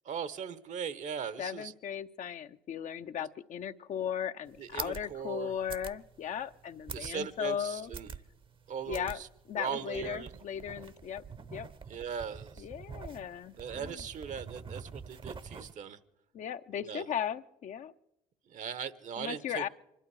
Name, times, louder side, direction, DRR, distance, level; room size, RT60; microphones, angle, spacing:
voice 1, 0.0-1.7 4.6-5.5 6.9-8.1 8.7-9.3 9.5-10.3 11.9-12.6 13.6-16.0 16.8-17.1 18.5-19.7, right 7 dB, 55° right, 15 dB, 1.1 m, -39 dB
voice 2, 1.4-7.9 8.9-9.2 9.5-11.2 11.5-11.7 12.6-14.0 16.3-17.9 19.2-19.7, left 9 dB, 55° left, 9 dB, 0.8 m, -37 dB
sound 1, 4.5-15.7, right 5 dB, 35° right, 0.9 m, -46 dB
25.0 x 12.0 x 4.8 m, 0.88 s
supercardioid pair, 65°, 15 cm